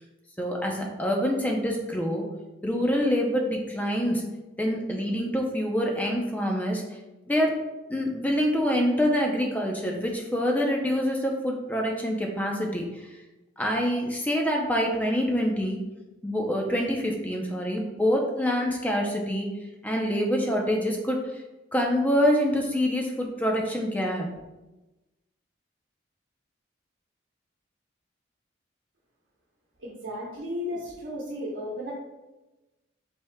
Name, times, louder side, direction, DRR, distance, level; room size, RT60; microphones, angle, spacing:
voice 1, 0.4-2.3 2.6-4.2 4.6-6.8 7.3-7.6 7.9-12.8 13.6-15.8 16.2-19.5 19.8-21.4 21.7-24.3, equal, 10° left, 0 dB, 0.6 m, -26 dB
voice 2, 29.8-31.9, left 1 dB, 70° right, -4 dB, 1.0 m, -34 dB
5.7 x 3.5 x 2.2 m, 1.1 s
head